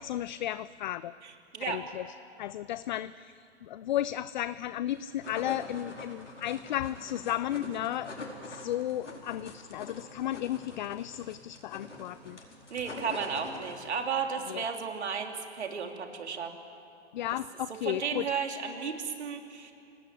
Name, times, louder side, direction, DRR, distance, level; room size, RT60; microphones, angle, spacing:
voice 1, 0.0-1.1 1.6-2.1 2.4-8.1 8.4-12.4 14.5-14.6 17.1-18.3, left 12 dB, 45° left, 17 dB, 0.5 m, -34 dB
voice 2, 1.2-1.8 12.7-16.5 17.8-19.7, right 6 dB, 70° right, 3 dB, 3.4 m, -34 dB
sound 1, 4.9-14.0, left 2 dB, 90° left, 4.6 m, -44 dB
27.0 x 18.5 x 8.4 m, 2.7 s
figure-of-eight pair, 125°, 35 cm